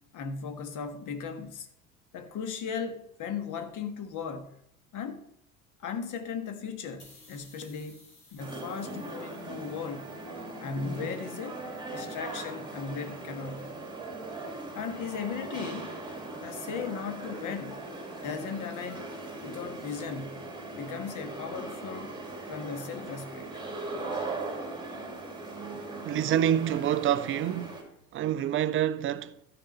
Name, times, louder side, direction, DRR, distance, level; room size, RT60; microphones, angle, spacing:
voice 1, 0.1-1.7 2.1-4.6 4.9-5.2 5.8-10.1 10.6-11.6 11.9-13.8 14.7-16.0 16.4-17.8 18.2-19.1 19.4-22.1 22.5-23.5, left 6 dB, 40° left, 1.5 m, -37 dB
sound 1, 7.0-10.4, left 2 dB, 85° left, 2.6 m, -58 dB
sound 2, 8.4-27.8, right 2 dB, 10° right, 2.6 m, -39 dB
voice 2, 26.0-27.8 28.1-29.3, right 10 dB, 30° right, 0.5 m, -27 dB
13.0 x 5.1 x 6.4 m
figure-of-eight pair, 65°, 45 cm